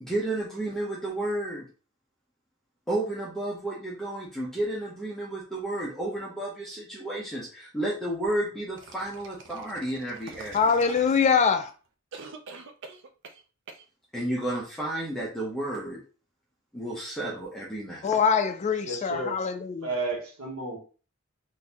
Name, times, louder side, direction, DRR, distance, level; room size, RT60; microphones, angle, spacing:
voice 1, 0.0-1.7 2.9-10.9 14.1-16.0 16.7-18.1, right 1 dB, ahead, 0.7 m, -32 dB
sound 1, 8.8-11.6 12.1-13.4 13.7-13.8, right 4 dB, 60° right, 0.5 m, -45 dB
voice 2, 10.5-11.7 18.0-19.9, left 6 dB, 30° left, 0.3 m, -23 dB
voice 3, 18.8-19.5 19.8-20.8, right 2 dB, 85° right, 1.3 m, -32 dB
3.7 x 2.6 x 2.8 m
head